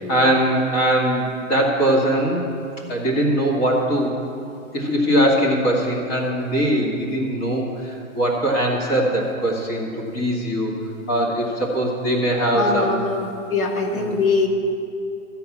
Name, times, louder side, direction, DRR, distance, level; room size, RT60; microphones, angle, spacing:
voice 1, 0.1-2.4 2.9-4.1 4.7-9.9 10.1-10.8 11.1-13.0 13.9-14.2, right 1 dB, 25° left, -2 dB, 2.1 m, -21 dB
voice 2, 12.6-14.5, left 3 dB, 85° left, 3 dB, 2.0 m, -22 dB
13.0 x 5.9 x 8.5 m, 2.6 s
hypercardioid pair, 160°, 42 cm